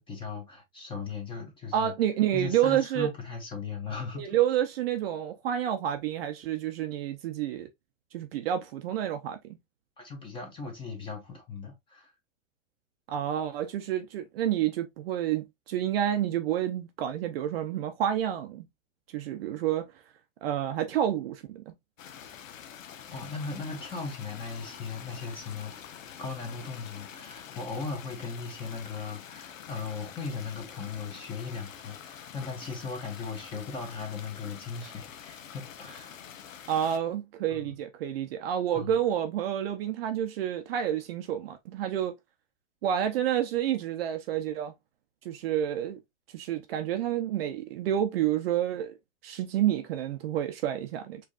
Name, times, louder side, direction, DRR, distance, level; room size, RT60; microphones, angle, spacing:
voice 1, 0.0-1.9 2.3-4.3 10.0-12.1 23.1-25.7 26.2-36.2 37.5-37.8 38.7-39.0, left 4 dB, 10° left, 1.5 m, -38 dB
voice 2, 1.7-3.1 4.2-7.7 8.1-9.4 13.1-18.6 19.1-19.9 20.4-21.7 36.7-42.2 42.8-44.7 45.2-46.0 46.3-48.9 49.2-51.2, right 10 dB, 45° right, 0.7 m, -29 dB
sound 1, 22.0-37.0, left 8 dB, 75° left, 1.0 m, -46 dB
4.9 x 3.3 x 2.4 m
hypercardioid pair, 135°, 40 cm